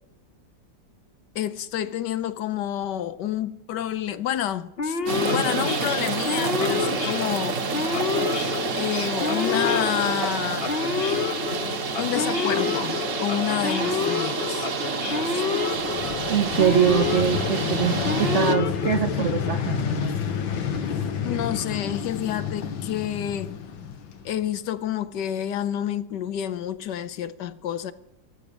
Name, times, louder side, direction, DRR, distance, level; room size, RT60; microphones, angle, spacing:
voice 1, 1.3-7.6 8.8-10.7 12.0-14.7 15.3-15.4 21.2-23.6 24.2-27.9, left 11 dB, 70° left, 1.3 m, -29 dB
Male speech man speaking / Siren, 4.8-19.5, left 5 dB, 45° left, 0.8 m, -29 dB
sound 1, 5.1-18.6, right 5 dB, 50° right, 1.3 m, -29 dB
Vehicle, 15.6-24.6, left 7 dB, 90° left, 2.0 m, -30 dB
voice 2, 16.3-20.2, right 9 dB, 70° right, 0.7 m, -23 dB
14.5 x 12.0 x 6.9 m
omnidirectional pair, 2.0 m